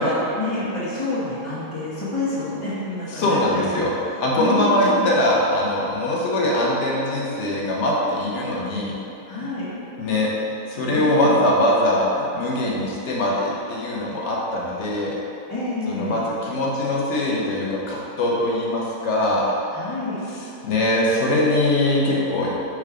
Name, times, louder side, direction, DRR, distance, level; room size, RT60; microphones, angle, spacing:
voice 1, 0.0-3.8 4.4-5.1 9.3-9.7 10.9-11.4 15.5-16.2 19.7-20.2, left 2 dB, 15° left, -13 dB, 0.6 m, -28 dB
voice 2, 3.1-3.9 4.2-9.0 9.4-9.5 10.0-10.3 10.7-15.2 15.9-19.5 20.3-22.6, left 1 dB, 60° left, -4 dB, 0.9 m, -22 dB
4.7 x 2.3 x 4.8 m, 2.8 s
omnidirectional pair, 1.6 m